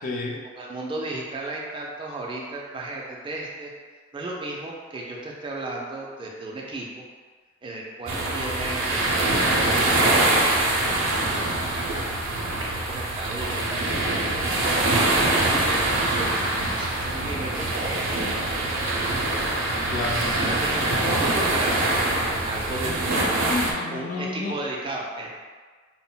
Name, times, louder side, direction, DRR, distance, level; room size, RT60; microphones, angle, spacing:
voice 1, 0.0-0.4 19.9-20.4 23.5-24.6, left 3 dB, 45° left, -1 dB, 0.4 m, -30 dB
voice 2, 0.5-3.7 4.1-7.0 7.6-11.2 11.6-12.0 12.9-14.2 14.9-18.0 18.3-18.9 20.2-23.3 23.9-25.3, right 2 dB, 25° right, -2 dB, 0.3 m, -34 dB
sound 1, 8.1-23.7, right 2 dB, 85° right, 0.5 m, -24 dB
2.2 x 2.0 x 3.7 m, 1.5 s
head